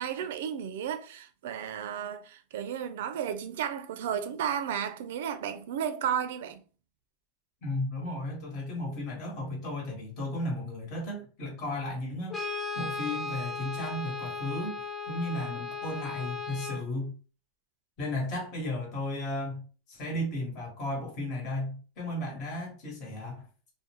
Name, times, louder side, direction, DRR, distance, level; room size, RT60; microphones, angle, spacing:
voice 1, 0.0-6.6, right 8 dB, 75° right, 0.3 m, -33 dB
voice 2, 7.6-12.5 12.7-17.1 18.0-23.4, left 1 dB, 40° left, 1.2 m, -34 dB
Brass instrument, 12.3-16.9, left 3 dB, 15° left, 0.4 m, -36 dB
2.4 x 2.1 x 2.9 m
supercardioid pair, 150°, 0 cm